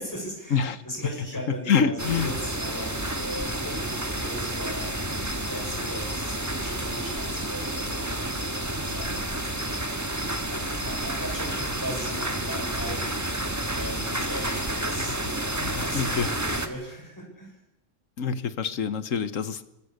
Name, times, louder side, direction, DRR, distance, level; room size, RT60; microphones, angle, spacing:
voice 1, 0.0-8.4 8.8-10.0 10.3-17.6, equal, 15° left, 0 dB, 6.7 m, -39 dB
voice 2, 1.5-2.3 14.3-14.4 15.6-16.3 18.2-19.6, left 6 dB, 90° left, 13 dB, 1.5 m, -26 dB
sound 1, 2.0-16.7, right 1 dB, 15° right, 1.6 m, -30 dB
25.5 x 22.0 x 6.6 m, 0.94 s
omnidirectional pair, 1.3 m